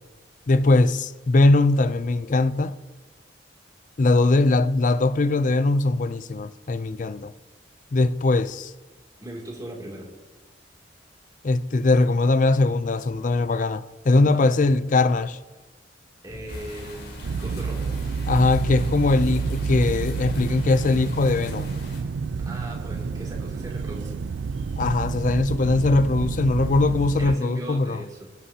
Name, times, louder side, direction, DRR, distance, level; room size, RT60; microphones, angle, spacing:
voice 1, 0.5-2.7 4.0-7.3 7.9-8.7 11.4-15.4 18.3-21.7 24.8-28.0, left 2 dB, 45° left, 0.5 m, -21 dB
voice 2, 9.2-10.1 14.2-14.5 16.2-17.9 22.4-24.1 27.2-28.3, right 1 dB, 20° right, 2.7 m, -38 dB
Thunder, 16.3-22.0, right 1 dB, 60° right, 1.0 m, -41 dB
sound 1, 16.5-22.0, left 3 dB, 70° left, 3.8 m, -45 dB
sound 2, 17.2-27.4, right 5 dB, 80° right, 0.4 m, -29 dB
21.0 x 11.5 x 2.8 m
head